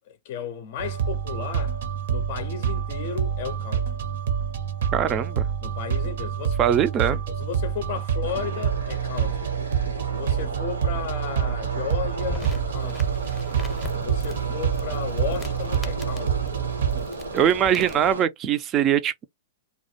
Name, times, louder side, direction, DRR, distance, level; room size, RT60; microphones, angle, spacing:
voice 1, 0.0-1.8 2.1-4.0 5.6-6.6 7.1-9.5 10.1-13.2 13.9-16.5, left 8 dB, 50° left, 0.5 m, -34 dB
sound 1, 0.8-17.1, right 8 dB, 70° right, 0.7 m, -27 dB
voice 2, 4.9-5.5 6.6-7.2 17.3-19.2, right 9 dB, 30° right, 0.4 m, -22 dB
sound 2, 8.2-18.2, right 2 dB, 85° right, 1.0 m, -35 dB
sound 3, 12.2-18.2, left 5 dB, 10° left, 0.7 m, -41 dB
2.3 x 2.1 x 2.8 m
hypercardioid pair, 120°, 0 cm